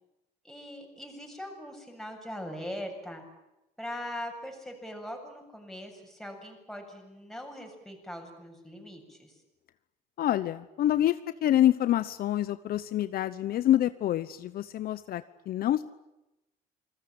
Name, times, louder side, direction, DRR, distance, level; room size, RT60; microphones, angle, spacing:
voice 1, 0.4-3.2 3.8-9.3, equal, ahead, 3 dB, 7.5 m, -41 dB
voice 2, 10.2-15.8, left 12 dB, 60° left, 13 dB, 1.0 m, -27 dB
28.5 x 21.0 x 8.9 m, 0.94 s
cardioid pair, 110°, 17 cm